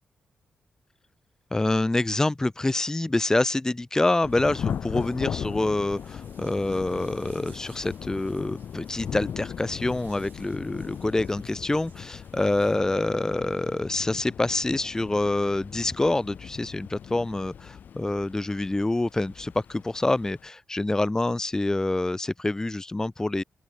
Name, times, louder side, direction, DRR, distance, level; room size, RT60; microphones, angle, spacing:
voice 1, 1.5-23.4, left 2 dB, 20° left, 0.6 m, -26 dB
Thunder / Rain, 4.2-20.5, left 8 dB, 70° left, 3.5 m, -38 dB
sound 1, 4.3-12.8, right 8 dB, 70° right, 4.8 m, -60 dB
open air
supercardioid pair, 50°, 3 cm